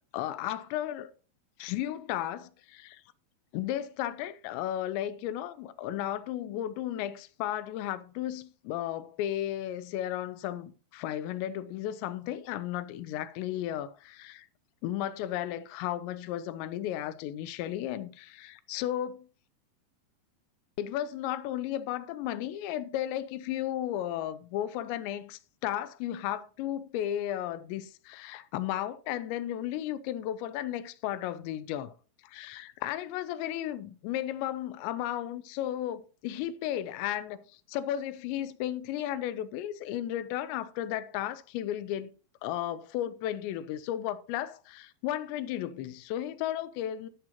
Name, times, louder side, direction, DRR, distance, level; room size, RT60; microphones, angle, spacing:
voice 1, 0.1-1.1 1.6-3.0 3.5-14.5 14.8-19.3 20.8-31.9 32.2-37.4 37.7-42.1 42.4-47.1, left 12 dB, 90° left, 2.9 m, -34 dB
12.5 x 10.5 x 2.9 m
omnidirectional pair, 5.0 m